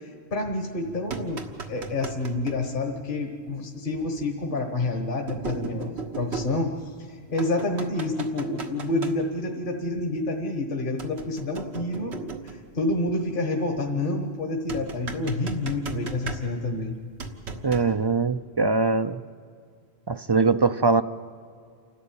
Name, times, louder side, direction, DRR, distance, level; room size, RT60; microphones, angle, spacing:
voice 1, 0.0-17.0, left 2 dB, 55° left, 2 dB, 1.6 m, -28 dB
sound 1, 0.8-2.6 4.0-4.1 5.3-7.0 7.4-9.1 11.0-12.7 14.7-16.8 17.2-18.0, right 4 dB, 90° right, 1.8 m, -37 dB
voice 2, 17.6-19.2 20.1-21.0, right 4 dB, 35° right, 11 dB, 0.4 m, -22 dB
29.0 x 12.5 x 8.8 m, 2.2 s
omnidirectional pair, 1.1 m